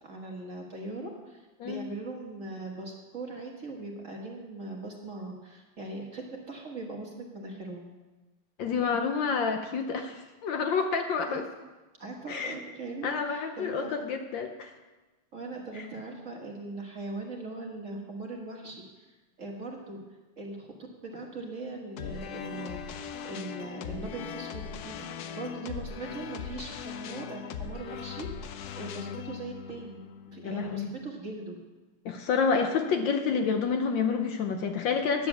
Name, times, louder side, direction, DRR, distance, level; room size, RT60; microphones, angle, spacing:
voice 1, 0.0-7.8 11.3-11.4 12.0-13.9 15.3-19.1 19.4-20.0 20.4-20.8 21.0-23.0 23.2-25.1 25.3-30.0 30.3-31.6, right 2 dB, 40° right, 0 dB, 1.5 m, -40 dB
voice 2, 8.6-11.4 12.3-12.5 13.0-14.7 30.4-30.9 32.0-35.3, left 5 dB, 65° left, 5 dB, 1.3 m, -28 dB
sound 1, 22.0-31.1, left 7 dB, 85° left, 0.8 m, -40 dB
10.5 x 7.4 x 7.1 m, 1.2 s
omnidirectional pair, 2.4 m